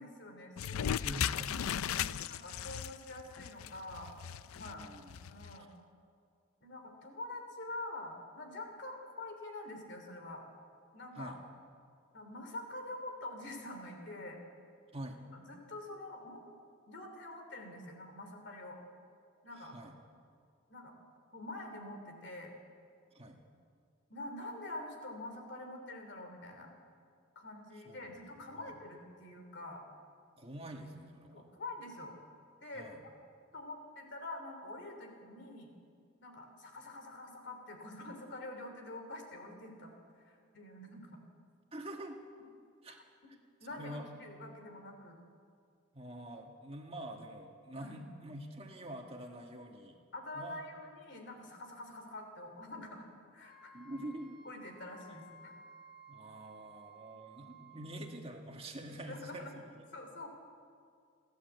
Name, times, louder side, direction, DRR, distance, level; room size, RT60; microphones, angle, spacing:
voice 1, 0.0-1.2 1.6-4.1 4.5-4.9 5.3-5.7 6.6-10.5 10.9-11.3 12.1-14.4 15.3-16.4 16.9-18.8 19.4-19.7 20.7-20.9 21.3-22.5 24.1-26.7 27.3-29.8 31.3-32.1 32.6-33.1 33.5-35.7 36.2-41.2 42.9-43.0 43.6-45.2 47.8-48.0 50.1-53.1 53.3-53.7 54.4-55.5 59.1-59.5 59.9-60.3, left 2 dB, 55° left, 4 dB, 3.1 m, -46 dB
sound 1, 0.6-5.6, left 9 dB, 85° left, 0.4 m, -37 dB
voice 2, 1.0-2.2 4.6-5.2 5.6-5.7 11.2-11.4 14.9-15.2 19.5-20.0 23.1-23.4 27.9-28.8 30.4-31.5 32.8-33.0 41.7-42.2 42.8-43.0 43.7-44.1 45.9-50.0 50.3-50.6 53.7-54.4 56.1-59.6, right 1 dB, 30° right, 2 dB, 1.8 m, -46 dB
Wind instrument woodwind instrument, 53.4-57.9, right 2 dB, 25° left, 4.1 m, -56 dB
28.5 x 11.5 x 8.2 m, 2.3 s
head